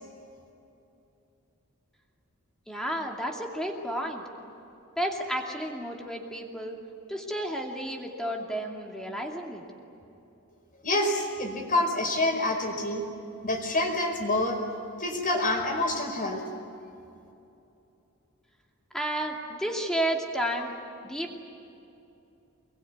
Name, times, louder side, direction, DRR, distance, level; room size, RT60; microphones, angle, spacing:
voice 1, 2.7-4.2 5.0-6.8 7.1-9.6 18.9-20.7 21.0-21.4, right 1 dB, 5° left, 0 dB, 2.5 m, -32 dB
voice 2, 10.8-13.0 13.4-14.6 15.0-16.4, left 2 dB, 40° left, 3 dB, 5.0 m, -27 dB
25.5 x 22.0 x 9.5 m, 2.8 s
head